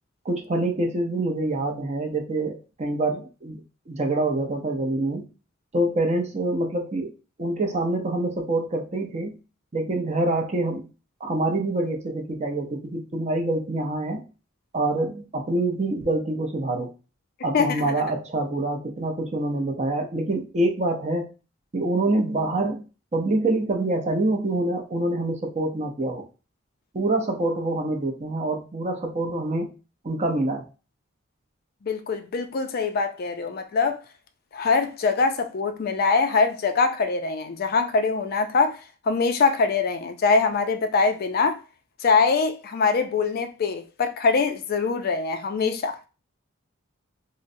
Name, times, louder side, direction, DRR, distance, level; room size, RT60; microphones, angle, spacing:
voice 1, 0.2-5.2 5.7-7.1 7.4-9.3 9.7-10.9 11.2-14.2 14.7-16.9 17.4-21.3 21.7-22.8 23.1-26.3 26.9-29.7 30.0-30.7, right 2 dB, 35° right, 0.6 m, -26 dB
voice 2, 17.5-17.9 31.8-34.0 34.5-41.6 42.0-46.0, left 4 dB, 50° left, 0.4 m, -23 dB
3.7 x 2.1 x 2.6 m
head